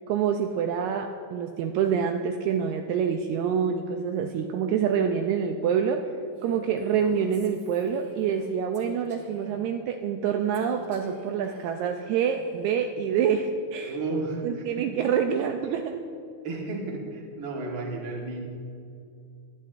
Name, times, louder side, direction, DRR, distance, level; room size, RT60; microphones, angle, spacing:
voice 1, 0.1-6.0 6.4-14.0 14.4-16.0, right 7 dB, 80° right, 4 dB, 1.9 m, -26 dB
Female speech woman speaking, 6.4-9.6 10.5-12.8, equal, 30° right, 2.5 m, -48 dB
voice 2, 13.8-15.0 16.4-18.4, right 3 dB, 45° right, 0 dB, 1.9 m, -33 dB
18.5 x 11.0 x 2.5 m, 2.5 s
omnidirectional pair, 3.5 m